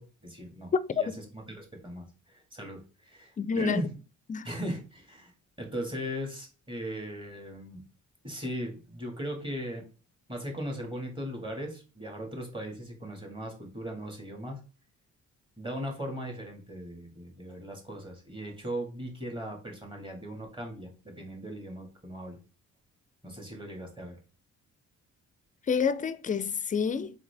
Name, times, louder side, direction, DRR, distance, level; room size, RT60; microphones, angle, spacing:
voice 1, 0.0-3.9 4.4-5.3 5.6-7.8 8.2-9.8 10.3-14.6 15.6-22.4 23.2-24.2, equal, 15° right, 1.7 m, -38 dB
voice 2, 3.4-3.8 4.3-4.5 25.7-27.1, left 6 dB, 25° left, 0.4 m, -28 dB
4.0 x 3.8 x 3.3 m
cardioid pair, 90°, 30 cm